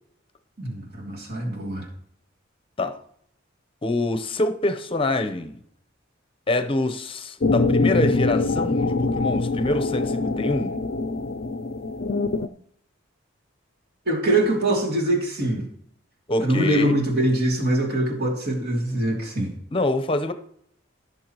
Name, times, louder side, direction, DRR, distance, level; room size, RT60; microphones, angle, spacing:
voice 1, 0.6-1.9 14.1-15.6 16.4-19.5, right 1 dB, 55° right, 2.8 m, -23 dB
voice 2, 3.8-5.6 6.5-10.7 16.3-17.0 19.7-20.3, left 2 dB, 30° left, 0.8 m, -25 dB
sound 1, 7.4-12.5, left 3 dB, 50° left, 0.5 m, -24 dB
16.5 x 6.9 x 3.0 m
head